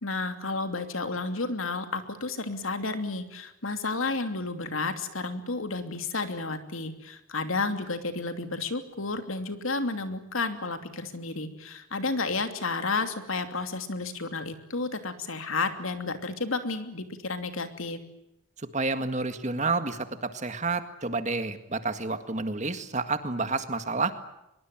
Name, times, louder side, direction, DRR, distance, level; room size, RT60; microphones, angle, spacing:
voice 1, 0.0-18.0, left 3 dB, 75° left, 8 dB, 2.9 m, -31 dB
voice 2, 18.6-24.1, right 3 dB, 35° right, 9 dB, 1.9 m, -29 dB
24.0 x 22.5 x 9.0 m, 0.87 s
head